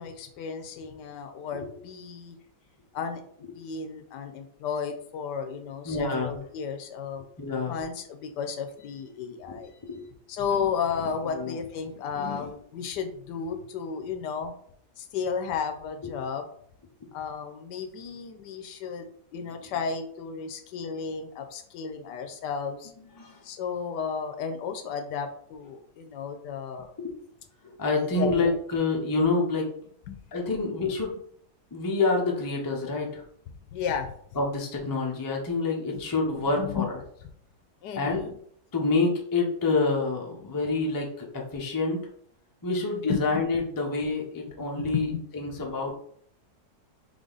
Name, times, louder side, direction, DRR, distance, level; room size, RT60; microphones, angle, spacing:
voice 1, 0.0-2.4 2.9-7.2 7.6-9.7 10.3-14.5 15.0-16.5 17.1-19.1 19.3-22.9 23.4-26.9 28.0-28.4 30.1-30.2 33.7-34.1 35.9-36.1 36.4-36.9 37.8-38.3 43.1-43.4 44.8-45.2, left 6 dB, 80° left, 7 dB, 1.3 m, -33 dB
voice 2, 5.8-6.4 7.4-7.8 9.5-10.0 11.3-11.5 16.0-16.1 23.0-23.4 27.0-27.1 27.8-29.7 30.3-31.2 31.7-33.2 34.4-36.8 38.0-38.2 38.7-42.0 42.6-45.9, left 3 dB, 25° left, -1 dB, 0.4 m, -27 dB
3.8 x 3.5 x 3.9 m, 0.63 s
omnidirectional pair, 1.8 m